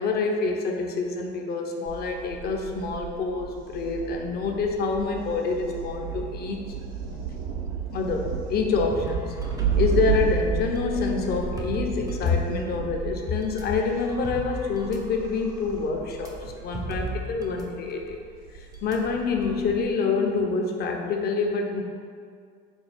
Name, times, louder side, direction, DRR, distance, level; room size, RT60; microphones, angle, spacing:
voice 1, 0.0-6.6 7.9-9.3 9.8-18.2 18.5-21.8, left 4 dB, 50° left, 2 dB, 0.5 m, -27 dB
Thunder, 1.9-19.9, right 6 dB, 70° right, 0.5 m, -33 dB
sound 1, 8.9-12.8 13.4-17.7 17.9-18.1 18.7-19.6, right 2 dB, 15° right, 0.5 m, -38 dB
4.2 x 2.3 x 3.2 m, 2.1 s
hypercardioid pair, 75°, 21 cm